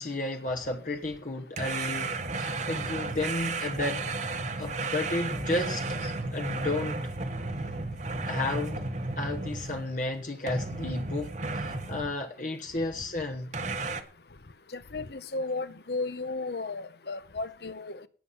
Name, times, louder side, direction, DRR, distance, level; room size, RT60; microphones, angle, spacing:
voice 1, 0.0-4.1 4.6-6.0 6.3-7.0 8.2-8.9 9.2-13.6, left 2 dB, 45° left, 1.1 m, -33 dB
sound 1, 1.6-10.0 10.5-12.2 13.5-14.0, right 3 dB, 40° right, 1.1 m, -33 dB
voice 2, 14.7-18.1, left 3 dB, 65° left, 0.9 m, -34 dB
17.5 x 7.2 x 5.8 m
head